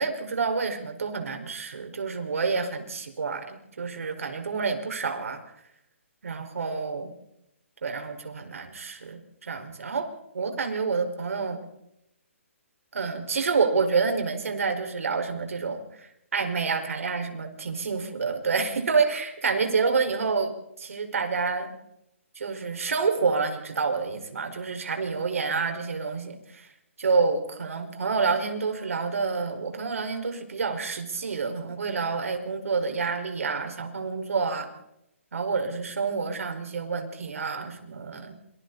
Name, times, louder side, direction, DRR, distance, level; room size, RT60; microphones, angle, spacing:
voice 1, 0.0-5.4 6.2-7.1 7.8-10.1 10.3-11.6 12.9-21.7 22.4-26.7 27.0-34.7 35.3-38.3, right 4 dB, 75° right, 5 dB, 5.1 m, -28 dB
27.5 x 25.5 x 4.1 m, 0.82 s
hypercardioid pair, 160°, 7 cm